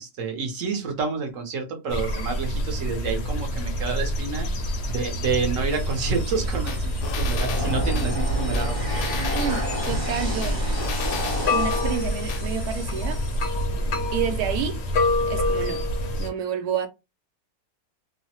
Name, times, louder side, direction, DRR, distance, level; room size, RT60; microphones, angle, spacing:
voice 1, 0.0-4.5 4.9-8.8, right 4 dB, 60° right, 1.1 m, -29 dB
sound 1, 1.9-16.3, equal, 60° left, 0.7 m, -27 dB
sound 2, 5.7-13.6, left 1 dB, 20° right, 0.8 m, -32 dB
sound 3, 6.7-8.1 8.5-10.0 10.4-11.8 12.3-12.4, left 7 dB, 85° left, 1.2 m, -34 dB
voice 2, 9.3-10.6 11.5-13.2 14.1-14.8 15.2-15.9 16.2-16.9, right 8 dB, 80° right, 1.1 m, -29 dB
3.0 x 2.1 x 2.8 m
omnidirectional pair, 1.7 m